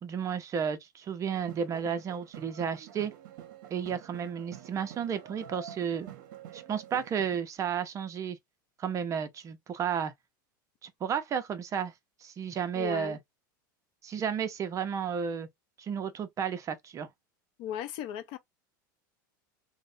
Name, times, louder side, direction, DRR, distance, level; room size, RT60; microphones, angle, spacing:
voice 1, 0.0-3.1 3.7-6.1 6.5-8.4 8.8-10.1 10.8-11.9 12.2-13.2 14.0-15.5 15.8-17.1, right 7 dB, 30° right, 0.4 m, -32 dB
sound 1, 1.3-7.4, right 10 dB, 65° right, 0.6 m, -48 dB
voice 2, 12.7-13.2 17.6-18.4, left 10 dB, 55° left, 0.5 m, -36 dB
2.4 x 2.0 x 2.5 m
hypercardioid pair, 110°, 11 cm